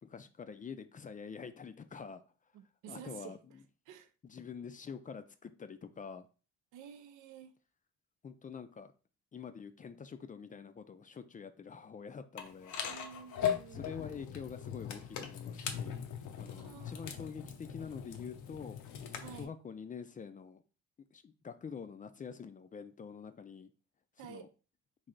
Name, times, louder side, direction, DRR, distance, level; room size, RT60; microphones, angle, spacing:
voice 1, 0.0-2.2 2.9-3.6 4.2-6.3 8.2-8.9 9.3-12.7 13.7-16.0 16.4-20.6 21.1-23.7 24.2-24.5, left 6 dB, 25° left, 0.4 m, -46 dB
voice 2, 2.5-3.4 3.9-4.1 6.7-7.5 12.9-13.9 16.5-17.1 19.2-19.5 24.2-24.5, right 8 dB, 85° right, 0.6 m, -50 dB
sound 1, 12.4-19.4, left 8 dB, 80° left, 0.7 m, -40 dB
3.3 x 2.7 x 3.8 m
cardioid pair, 90°, 30 cm